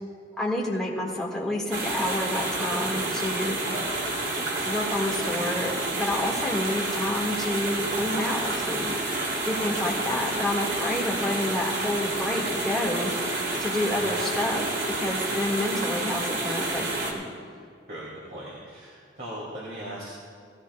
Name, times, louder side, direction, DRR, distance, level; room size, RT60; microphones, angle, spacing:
voice 1, 0.4-3.6 4.6-8.9 9.5-13.1 13.6-17.2, left 1 dB, 5° left, -5 dB, 2.0 m, -29 dB
sound 1, 1.7-17.1, right 2 dB, 85° right, 2.9 m, -29 dB
voice 2, 9.5-9.9 13.9-14.2 17.9-20.2, right 1 dB, 50° right, -5 dB, 2.6 m, -39 dB
18.0 x 16.0 x 2.4 m, 2.3 s
head